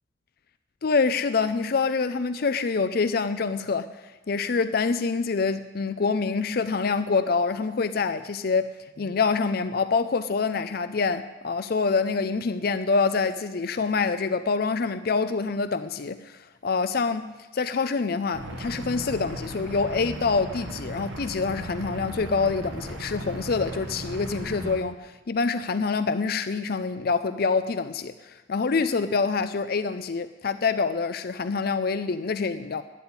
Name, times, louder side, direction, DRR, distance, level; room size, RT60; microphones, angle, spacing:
voice 1, 0.8-3.9 4.3-8.7 9.0-32.8, left 4 dB, 50° left, 11 dB, 0.5 m, -26 dB
sound 1, 18.3-24.8, right 1 dB, 80° right, 2.3 m, -37 dB
12.0 x 9.5 x 9.8 m, 1.2 s
head